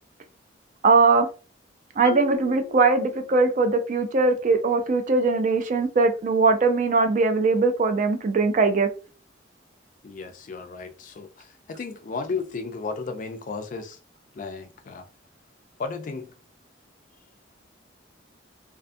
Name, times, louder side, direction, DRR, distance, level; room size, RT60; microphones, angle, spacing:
voice 1, 0.8-1.3 2.0-8.9, right 3 dB, 40° right, 0.3 m, -20 dB
Marimba xylophone, 2.0-3.8, left 9 dB, 20° right, 0.8 m, -40 dB
voice 2, 10.0-14.0 14.4-15.0 15.8-16.3, left 4 dB, 45° left, 0.3 m, -34 dB
2.5 x 2.3 x 2.5 m
head